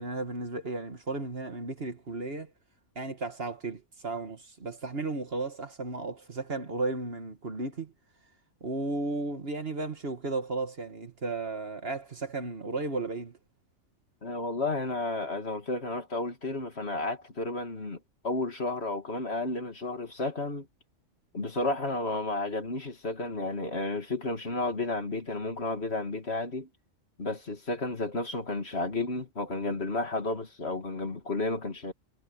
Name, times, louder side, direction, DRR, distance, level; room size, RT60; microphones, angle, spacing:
voice 1, 0.0-2.5 3.0-7.9 8.6-13.4, right 3 dB, 45° right, 1.9 m, -34 dB
voice 2, 14.2-18.0 18.2-20.7 21.3-26.7 27.2-31.9, left 2 dB, 50° left, 2.8 m, -32 dB
omnidirectional pair, 1.4 m